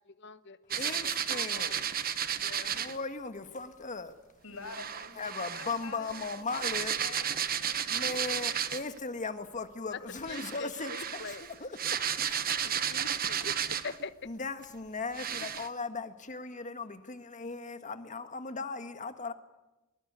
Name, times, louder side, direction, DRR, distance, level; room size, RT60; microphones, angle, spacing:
voice 1, 0.2-0.6 0.8-1.0 1.3-1.9 2.4-2.8 10.3-11.4 12.6-14.1 15.4-15.5, left 4 dB, 55° left, 1.0 m, -44 dB
sound 1, 0.7-3.0 4.7-9.0 10.2-14.0 14.6-14.7 15.1-15.7, right 9 dB, 45° right, 1.1 m, -33 dB
voice 2, 0.8-1.8 2.7-4.1 5.2-6.9 7.9-10.9 11.2-12.0 14.2-19.3, left 4 dB, 35° left, 1.6 m, -38 dB
voice 3, 4.4-8.2, left 3 dB, 75° left, 5.8 m, -48 dB
23.5 x 20.5 x 9.6 m
head